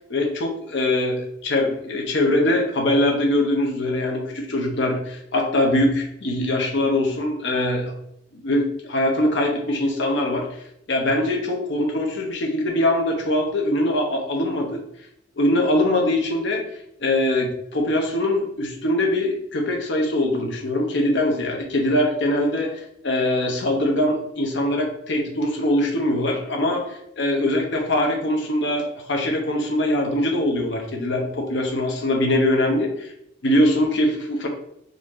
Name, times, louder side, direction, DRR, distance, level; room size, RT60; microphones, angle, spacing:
voice 1, 0.1-7.9 8.3-10.5 10.9-14.8 15.4-16.6 17.0-22.7 23.0-26.8 27.2-33.1 33.4-34.5, left 1 dB, 65° left, 2 dB, 0.8 m, -22 dB
4.0 x 2.6 x 3.1 m, 0.76 s
head